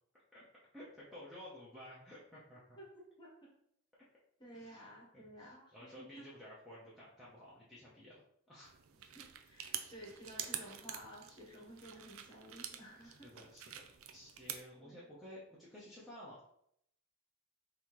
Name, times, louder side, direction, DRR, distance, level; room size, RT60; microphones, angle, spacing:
voice 1, 0.7-2.8 4.5-8.2 8.5-8.7 13.0-13.7 14.1-16.5, left 1 dB, ahead, -9 dB, 0.8 m, -53 dB
voice 2, 2.8-3.5 4.4-6.3 8.9-13.4 14.7-15.1, equal, 20° left, -2 dB, 1.1 m, -54 dB
sound 1, 8.6-14.6, right 9 dB, 65° right, 0.4 m, -47 dB
5.5 x 2.8 x 3.1 m, 0.71 s
head